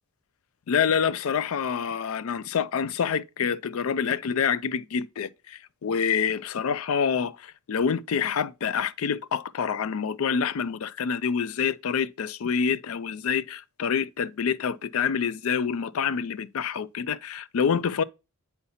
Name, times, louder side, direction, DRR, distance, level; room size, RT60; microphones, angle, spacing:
voice 1, 0.7-18.0, left 6 dB, 75° left, 0.4 m, -27 dB
7.9 x 5.6 x 2.7 m
head